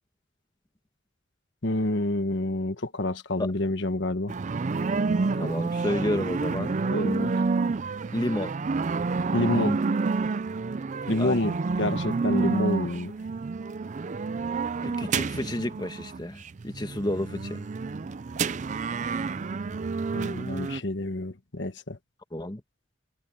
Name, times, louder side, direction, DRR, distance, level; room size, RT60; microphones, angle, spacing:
voice 1, 1.6-4.3 6.9-7.3 9.3-9.8 11.1-11.5 11.8-13.1 20.1-22.0, left 1 dB, 60° left, 1.3 m, -28 dB
sound 1, 4.3-20.8, right 4 dB, 40° right, 0.4 m, -29 dB
voice 2, 5.3-6.8 8.1-8.5 11.2-11.6 14.8-17.7 22.3-22.6, left 1 dB, 20° left, 1.5 m, -31 dB
head